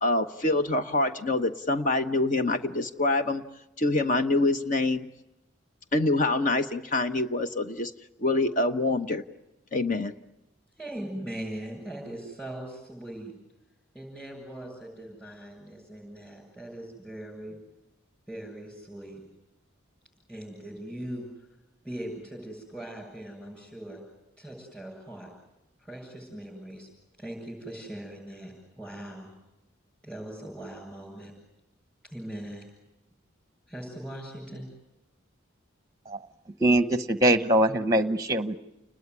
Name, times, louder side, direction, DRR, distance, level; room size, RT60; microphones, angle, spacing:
voice 1, 0.0-3.4 3.8-5.1 5.9-7.9 8.2-9.2 9.7-10.1, left 2 dB, 40° left, 9 dB, 1.0 m, -25 dB
voice 2, 10.7-13.3 13.9-17.6 18.3-19.2 20.3-21.5 21.8-24.0 24.4-25.3 25.8-26.9 27.2-29.3 30.0-31.3 32.0-32.6 33.7-34.7, right 1 dB, 5° left, -6 dB, 7.9 m, -40 dB
voice 3, 36.6-38.6, right 1 dB, 15° right, 12 dB, 1.0 m, -22 dB
29.5 x 20.5 x 9.7 m, 0.93 s
head